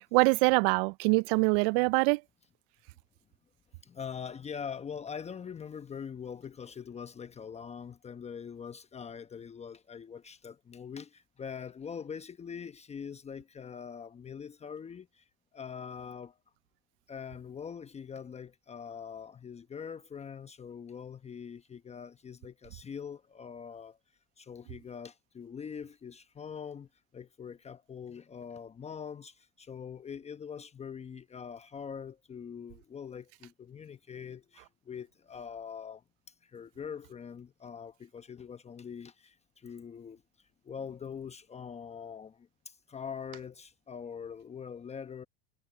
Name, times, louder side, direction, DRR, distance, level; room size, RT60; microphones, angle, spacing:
voice 1, 0.0-2.2, right 28 dB, 60° right, 0.6 m, -24 dB
voice 2, 3.8-16.4 17.1-24.0 24.4-36.0 36.4-40.2 40.6-45.2, left 7 dB, 20° left, 1.0 m, -43 dB
hypercardioid pair, 105°, 32 cm